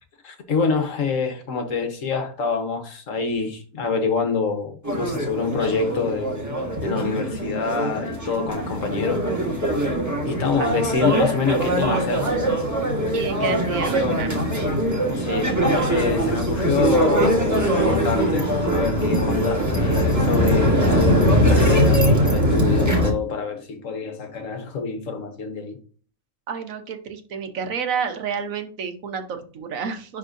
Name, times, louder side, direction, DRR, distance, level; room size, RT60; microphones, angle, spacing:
voice 1, 0.2-9.3 10.2-12.2 13.4-13.6 14.0-14.2 15.1-15.6 15.9-25.8, left 5 dB, 60° left, 1.5 m, -26 dB
sound 1, 4.8-23.1, equal, 10° right, 1.7 m, -21 dB
voice 2, 13.1-14.3 26.5-30.2, right 6 dB, 65° right, 1.3 m, -29 dB
11.0 x 3.6 x 2.6 m
omnidirectional pair, 1.5 m